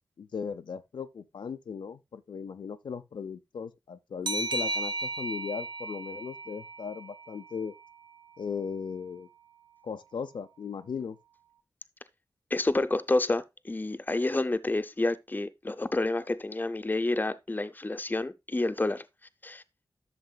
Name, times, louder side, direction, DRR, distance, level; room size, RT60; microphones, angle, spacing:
voice 1, 0.2-7.7 8.4-9.3 9.8-11.2, left 6 dB, 85° left, 0.5 m, -37 dB
sound 1, 4.3-7.6, right 2 dB, 80° right, 0.6 m, -35 dB
voice 2, 12.5-19.0 19.4-19.6, left 2 dB, 25° left, 0.6 m, -29 dB
12.0 x 6.6 x 2.3 m
wide cardioid pair, 60°, 8 cm